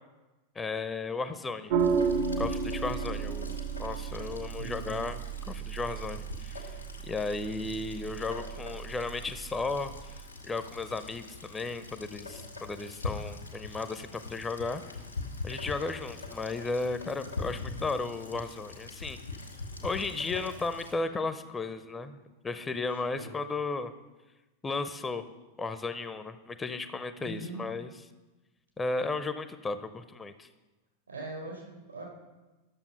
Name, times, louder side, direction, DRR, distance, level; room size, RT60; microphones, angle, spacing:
voice 1, 0.6-1.7 2.4-5.2 5.5-6.7 7.0-14.8 15.4-19.2 19.8-23.9 24.6-25.2 25.6-27.9 28.8-30.5, left 3 dB, 15° left, 11 dB, 0.5 m, -34 dB
sound 1, 1.7-10.3, right 6 dB, 50° right, 0.7 m, -34 dB
Rain, 1.8-20.9, left 3 dB, 85° left, 1.7 m, -43 dB
voice 2, 4.6-5.0 23.1-23.3 27.2-27.7 31.1-32.0, right 2 dB, 75° right, -2 dB, 4.3 m, -41 dB
12.0 x 7.0 x 5.5 m, 1.1 s
figure-of-eight pair, 90°, 0 cm